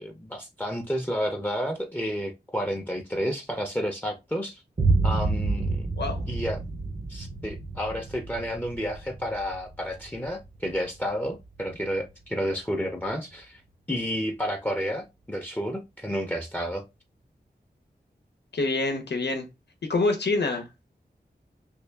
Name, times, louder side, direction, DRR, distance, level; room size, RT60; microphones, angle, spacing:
voice 1, 0.0-4.6 5.0-5.9 6.3-6.6 7.1-13.6 13.9-16.8, equal, 10° left, 0.7 m, -31 dB
Boom, 4.8-12.6, right 3 dB, 40° right, 0.8 m, -30 dB
voice 2, 18.5-19.5 19.8-20.7, left 3 dB, 75° left, 0.8 m, -26 dB
3.5 x 2.4 x 3.4 m
wide cardioid pair, 50°, 17 cm